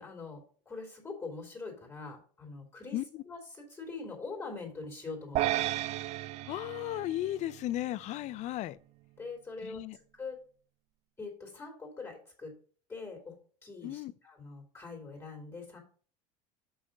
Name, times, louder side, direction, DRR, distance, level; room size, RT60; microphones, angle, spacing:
voice 1, 0.0-5.8 9.2-10.4 11.2-12.6 12.9-15.8, left 3 dB, 15° left, 2.4 m, -43 dB
voice 2, 2.9-3.2 6.4-8.8 9.6-10.0 13.8-14.1, left 14 dB, 45° left, 0.5 m, -35 dB
sound 1, 5.3-7.8, right 15 dB, 40° right, 0.4 m, -33 dB
6.3 x 5.6 x 5.1 m
supercardioid pair, 115°, 16 cm